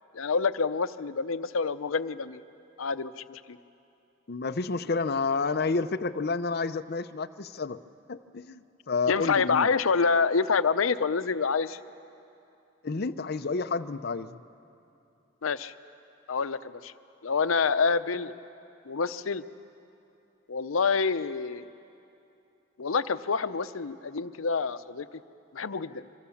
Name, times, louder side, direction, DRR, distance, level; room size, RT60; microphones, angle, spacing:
voice 1, 0.1-2.4 2.8-3.6 9.1-11.8 15.4-15.7 16.3-16.9 17.2-18.3 18.9-19.4 20.5-21.6 22.8-25.1 25.5-26.0, left 5 dB, 90° left, 13 dB, 0.7 m, -27 dB
voice 2, 4.3-7.8 8.1-9.7 12.8-14.3, left 4 dB, 50° left, 11 dB, 0.6 m, -30 dB
25.5 x 24.0 x 7.1 m, 2.7 s
head